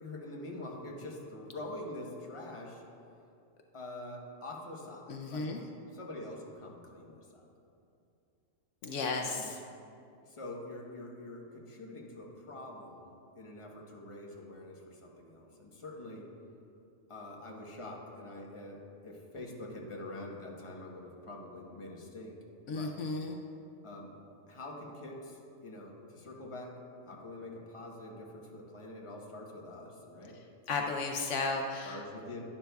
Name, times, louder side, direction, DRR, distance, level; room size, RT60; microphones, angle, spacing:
voice 1, 0.0-2.8 3.7-7.4 9.2-9.5 10.2-16.3 17.1-22.4 22.7-22.9 23.8-24.1 24.5-30.4 31.8-32.5, left 1 dB, 25° left, -1 dB, 1.0 m, -45 dB
voice 2, 5.1-5.6 8.8-9.6 22.7-23.4 30.7-32.0, left 3 dB, 75° left, 2 dB, 1.0 m, -34 dB
11.5 x 10.5 x 2.3 m, 2.6 s
omnidirectional pair, 1.3 m